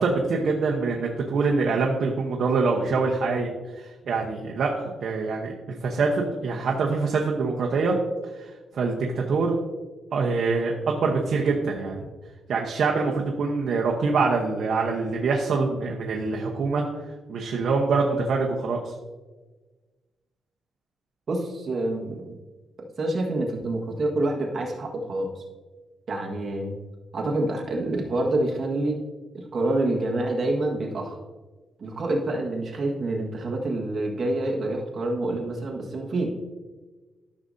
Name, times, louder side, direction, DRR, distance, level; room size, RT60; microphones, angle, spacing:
voice 1, 0.0-3.5 3.8-7.9 8.4-9.6 10.1-12.1 12.5-16.8 17.3-18.9, right 4 dB, 55° right, -1 dB, 0.9 m, -25 dB
voice 2, 21.3-22.4 23.0-25.4 26.1-26.8 27.1-29.0 29.3-31.2 31.8-36.3, right 2 dB, 40° right, -1 dB, 1.5 m, -27 dB
13.5 x 6.3 x 2.7 m, 1.3 s
wide cardioid pair, 175°, 0 cm